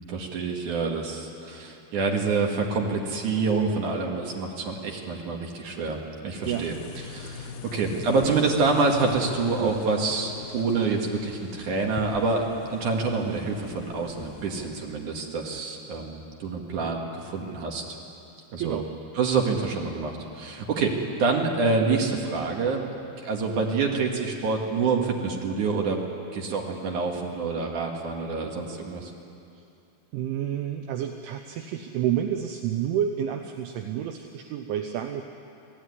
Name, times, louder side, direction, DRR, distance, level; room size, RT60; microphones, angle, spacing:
voice 1, 0.0-6.8 7.1-18.0 18.5-18.8 19.1-22.8 23.2-26.0 26.3-29.1, right 4 dB, 50° right, 0 dB, 2.6 m, -27 dB
sound 1, 6.4-14.7, left 6 dB, 75° left, 2.5 m, -41 dB
voice 2, 18.6-18.9 30.1-35.2, right 10 dB, 75° right, 5 dB, 3.1 m, -29 dB
25.0 x 17.0 x 9.7 m, 2.6 s
omnidirectional pair, 5.9 m